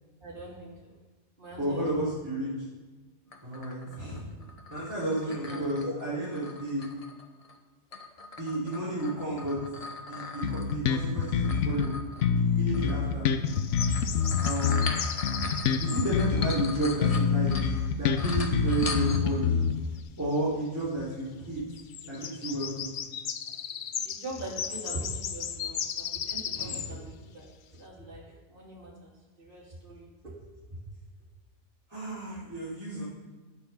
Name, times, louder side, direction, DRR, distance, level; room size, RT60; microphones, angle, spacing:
voice 1, 0.2-1.0 1.4-2.1 3.8-4.5 5.1-6.0 10.1-10.2 13.2-13.5 15.3-15.5 23.9-29.1 29.4-30.3, right 1 dB, 45° right, -5 dB, 3.4 m, -43 dB
voice 2, 1.6-2.5 3.4-4.2 4.7-6.9 8.4-9.6 10.1-11.9 12.3-13.3 14.4-15.0 15.8-17.5 18.0-19.6 20.2-21.6 22.1-22.9 26.5-26.8 31.9-33.0, right 1 dB, 15° right, -12 dB, 3.8 m, -32 dB
sound 1, 3.3-7.6 7.9-12.3 12.7-13.0 13.5-17.9 18.2-19.4, left 3 dB, 35° left, 0.9 m, -40 dB
Bass guitar, 10.4-11.9 12.2-16.7 17.0-20.0, left 6 dB, 85° left, 1.0 m, -26 dB
sound 2, 13.5-16.2 20.0-20.1 20.3-20.4 21.8-26.9, left 8 dB, 55° left, 0.6 m, -36 dB
9.3 x 8.4 x 5.9 m, 1.3 s
omnidirectional pair, 1.2 m